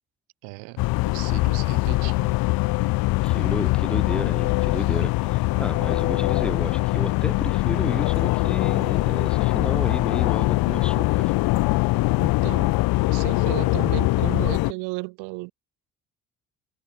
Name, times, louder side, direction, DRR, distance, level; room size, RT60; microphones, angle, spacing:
voice 1, 0.4-2.4 12.2-12.8 13.1-15.5, right 31 dB, 85° right, 1.8 m, -35 dB
sound 1, 0.8-14.7, left 21 dB, 80° left, 0.9 m, -22 dB
voice 2, 3.2-11.3, equal, 5° left, 3.3 m, -32 dB
supercardioid pair, 60°, 36 cm